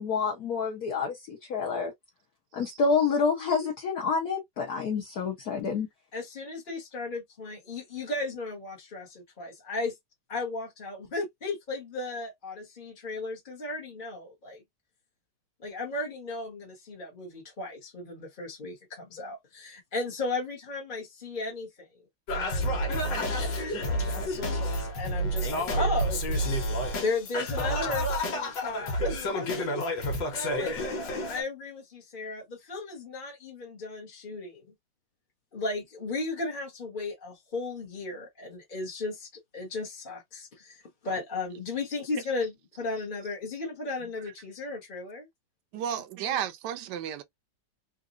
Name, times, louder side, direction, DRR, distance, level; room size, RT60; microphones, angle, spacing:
voice 1, 0.0-1.9 2.5-5.9, left 5 dB, 60° left, 1.3 m, -28 dB
voice 2, 6.1-9.9 10.3-14.6 15.6-21.9 22.3-23.4 24.1-26.6 27.0-29.8 30.3-30.7 31.3-34.6 35.5-45.3 45.9-46.4, left 3 dB, 35° left, 1.0 m, -35 dB
Singing, 22.3-31.4, equal, 80° left, 1.7 m, -29 dB
voice 3, 45.7-47.2, right 9 dB, 75° right, 1.2 m, -32 dB
3.9 x 2.5 x 2.4 m
omnidirectional pair, 2.0 m